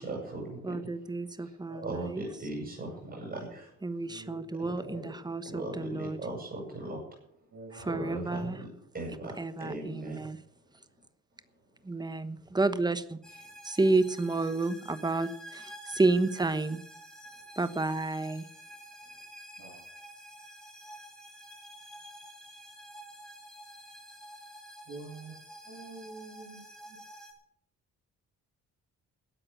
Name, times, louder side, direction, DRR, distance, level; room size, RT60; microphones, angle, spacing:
voice 1, 0.0-0.7 1.4-3.7 4.6-4.9 5.4-7.0 7.7-10.3, right 2 dB, 30° right, -1 dB, 7.9 m, -39 dB
voice 2, 0.6-2.2 3.8-6.2 7.9-8.6 9.4-10.4 11.8-13.2 13.6-15.6 16.0-16.8 17.6-18.5, right 2 dB, 15° right, 13 dB, 1.2 m, -30 dB
voice 3, 4.1-5.0 7.5-7.9 19.6-20.0 24.9-25.3 25.6-27.0, right 3 dB, 65° right, -5 dB, 6.9 m, -47 dB
sound 1, 13.2-27.3, equal, ahead, 4.5 m, -49 dB
13.0 x 8.5 x 9.0 m, 0.72 s
cardioid pair, 90°, 30 cm